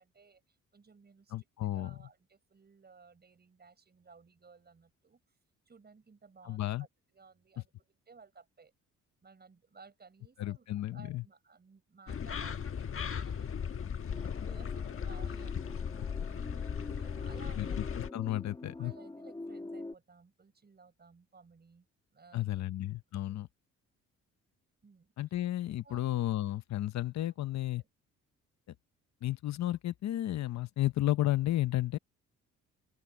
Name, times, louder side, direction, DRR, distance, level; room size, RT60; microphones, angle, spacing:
voice 1, 0.0-1.3 1.6-5.2 5.7-8.7 9.2-13.9 14.3-16.3 17.0-17.8 18.7-22.9 23.3-23.4 24.8-25.1 25.8-26.0 27.8-27.9, right 4 dB, 35° right, 5.8 m, -58 dB
voice 2, 1.3-1.9 6.5-6.9 10.4-11.2 17.6-17.7 18.0-18.9 22.3-23.5 25.2-27.8 29.2-32.0, left 14 dB, 65° left, 0.8 m, -33 dB
sound 1, 12.1-18.1, left 7 dB, 45° left, 1.3 m, -37 dB
sound 2, 14.1-19.9, left 2 dB, 15° left, 1.9 m, -46 dB
open air
cardioid pair, 90°, 30 cm